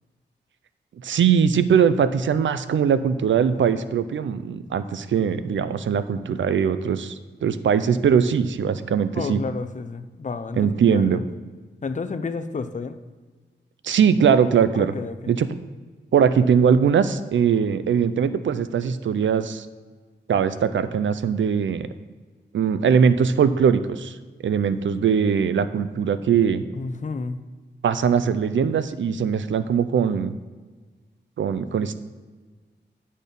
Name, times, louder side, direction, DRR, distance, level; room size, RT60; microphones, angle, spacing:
voice 1, 1.0-9.4 10.6-11.2 13.8-14.9 15.3-15.5 16.1-19.7 20.3-21.9 22.5-24.2 24.4-26.6 27.8-30.3 31.4-31.9, right 7 dB, 80° right, 12 dB, 0.5 m, -21 dB
voice 2, 9.1-11.3 11.8-13.0 14.7-15.3 26.7-27.4, left 4 dB, 40° left, 9 dB, 0.6 m, -31 dB
10.0 x 4.2 x 5.3 m, 1.4 s
wide cardioid pair, 100°, 19 cm